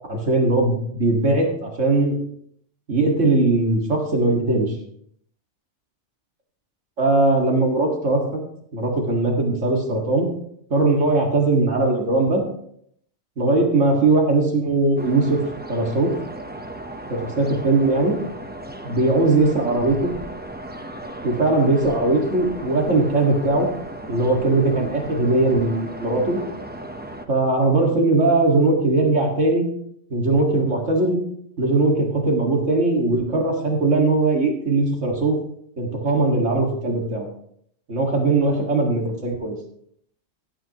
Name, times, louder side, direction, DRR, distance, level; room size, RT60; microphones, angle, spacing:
voice 1, 0.1-2.2 2.9-4.7 7.0-8.2 8.7-10.3 10.7-12.4 13.4-15.4 15.7-16.1 17.1-18.2 18.8-20.1 21.2-23.7 24.1-26.4 27.3-29.6 30.1-31.2 31.6-35.3 35.8-37.3 37.9-39.6, right 2 dB, 75° right, 0 dB, 2.3 m, -20 dB
sound 1, 15.0-27.3, right 1 dB, 10° right, 0.6 m, -36 dB
15.5 x 9.9 x 2.9 m, 0.68 s
omnidirectional pair, 1.3 m